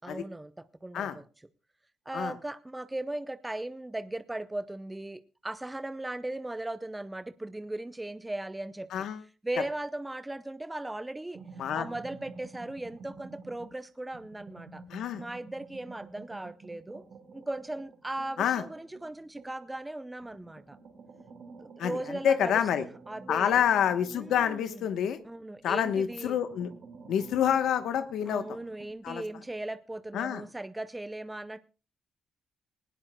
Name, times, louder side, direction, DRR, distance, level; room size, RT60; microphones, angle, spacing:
voice 1, 0.0-1.2 2.1-9.1 9.4-11.4 11.7-14.8 15.2-17.0 17.3-20.8 21.6-23.6 24.1-24.9 25.2-26.4 28.3-31.6, right 1 dB, 10° right, 12 dB, 0.6 m, -38 dB
sound 1, 11.3-13.8 14.1-19.7 20.2-25.2 25.6-28.9, right 4 dB, 60° right, 4.2 m, -50 dB
voice 2, 14.9-15.2 18.4-18.6 21.8-22.0 22.2-22.8 23.3-25.2 25.6-26.7 27.1-28.4 29.0-29.2 30.1-30.4, left 9 dB, 80° left, 9 dB, 1.0 m, -27 dB
19.5 x 17.0 x 2.2 m, 0.35 s
cardioid pair, 95°, 0 cm